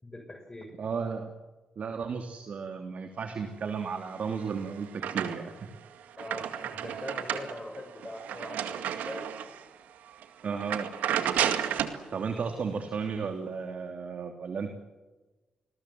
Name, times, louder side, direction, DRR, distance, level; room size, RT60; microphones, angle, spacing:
voice 1, 0.0-0.7 6.2-9.3, left 1 dB, 25° left, 3 dB, 6.7 m, -42 dB
voice 2, 0.8-1.3 1.8-5.7 10.4-10.9 12.1-14.7, right 5 dB, 60° right, 6 dB, 3.0 m, -34 dB
vcr eject, 4.1-5.7 6.0-9.6 10.1-10.2 10.6-12.0, right 9 dB, 80° right, 2.1 m, -32 dB
29.5 x 21.0 x 7.8 m, 1.2 s
supercardioid pair, 45°, 3 cm